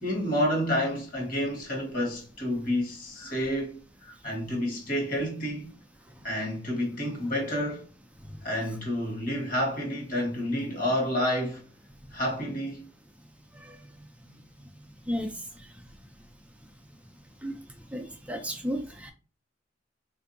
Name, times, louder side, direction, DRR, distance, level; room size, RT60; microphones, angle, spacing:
voice 1, 0.0-5.7 6.2-7.8 8.4-11.6 12.1-12.9, equal, 50° left, 1.3 m, -29 dB
voice 2, 17.9-19.1, equal, 5° right, 0.4 m, -32 dB
3.4 x 2.6 x 2.6 m
head